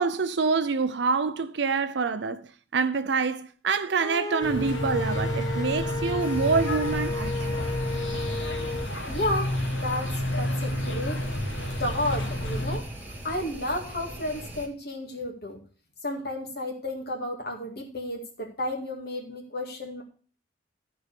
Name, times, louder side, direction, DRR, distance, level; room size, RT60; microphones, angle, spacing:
voice 1, 0.0-2.4 2.7-7.6, right 4 dB, 65° right, 0.5 m, -26 dB
sound 1, 4.0-8.9, left 3 dB, 20° left, 0.5 m, -34 dB
sound 2, 4.4-12.8, left 1 dB, 80° left, 1.9 m, -30 dB
sound 3, 6.2-14.7, right 1 dB, 10° right, 1.8 m, -41 dB
voice 2, 9.1-11.2 11.8-12.9 13.2-15.6 16.0-20.0, left 1 dB, 55° left, 2.0 m, -32 dB
13.0 x 4.7 x 6.7 m
head